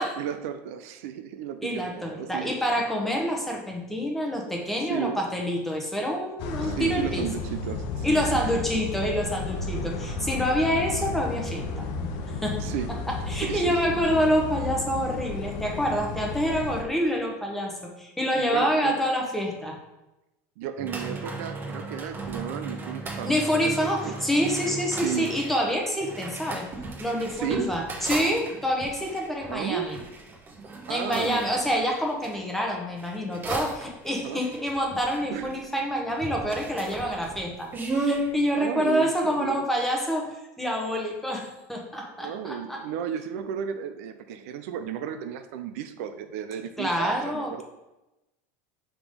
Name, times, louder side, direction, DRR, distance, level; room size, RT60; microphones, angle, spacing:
voice 1, 0.2-2.8 4.9-5.2 6.6-8.6 12.6-12.9 13.4-14.2 18.3-19.0 20.6-24.2 25.0-25.3 27.3-27.7 29.4-29.9 30.9-31.6 34.1-34.4 35.3-35.6 38.6-39.6 42.2-47.6, right 9 dB, 75° right, 9 dB, 0.5 m, -34 dB
voice 2, 1.6-7.3 8.0-12.1 12.4-12.7 13.3-19.8 23.2-26.7 27.0-30.0 30.9-42.8 46.8-47.6, equal, 5° left, 0 dB, 1.0 m, -27 dB
sound 1, 6.4-16.8, left 3 dB, 60° left, 0.8 m, -33 dB
sound 2, 20.8-32.4 32.9-35.8 36.1-38.3, right 2 dB, 30° right, 1.2 m, -35 dB
4.9 x 3.7 x 5.2 m, 0.96 s
supercardioid pair, 140°, 8 cm